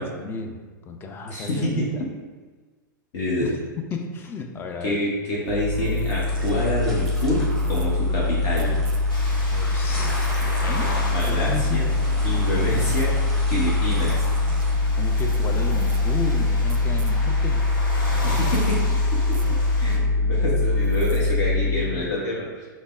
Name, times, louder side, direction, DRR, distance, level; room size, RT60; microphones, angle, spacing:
voice 1, 0.0-1.9 3.4-3.5 3.9-5.0 9.5-11.8 14.9-17.6 21.5-22.1, left 4 dB, 20° left, 4 dB, 0.4 m, -33 dB
voice 2, 1.3-1.9 3.1-3.6 4.8-8.8 11.0-11.9 12.2-13.1 13.4-14.2 18.2-18.8 19.1-19.2 19.5-22.7, left 1 dB, 55° left, -6 dB, 0.9 m, -27 dB
sound 1, 5.5-22.0, left 2 dB, 80° right, 0.4 m, -23 dB
sound 2, 6.3-14.7, equal, 5° left, 0.8 m, -38 dB
sound 3, 9.1-20.0, left 1 dB, 90° left, 0.8 m, -36 dB
5.2 x 2.0 x 2.4 m, 1.4 s
hypercardioid pair, 110°, 11 cm